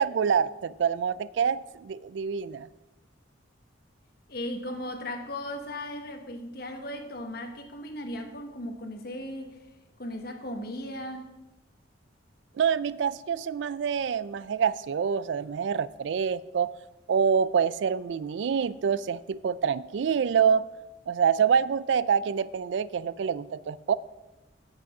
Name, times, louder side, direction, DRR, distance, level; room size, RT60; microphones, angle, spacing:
voice 1, 0.0-2.7 12.6-16.7 17.1-20.7 21.1-23.9, right 7 dB, 70° right, 0.3 m, -26 dB
voice 2, 4.3-9.6 10.0-11.4, left 1 dB, 50° left, 1.2 m, -37 dB
8.3 x 7.6 x 6.0 m
head